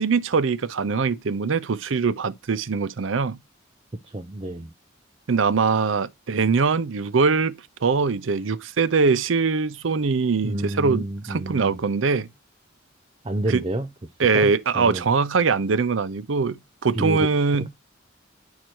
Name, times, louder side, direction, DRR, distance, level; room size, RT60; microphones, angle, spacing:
voice 1, 0.0-3.4 5.3-12.3 13.5-13.6 14.2-17.7, right 4 dB, 80° right, 0.6 m, -22 dB
voice 2, 4.0-4.7 10.4-11.8 13.2-13.9 14.3-15.0 16.9-17.3, right 1 dB, 30° right, 0.6 m, -29 dB
10.5 x 4.8 x 4.5 m
head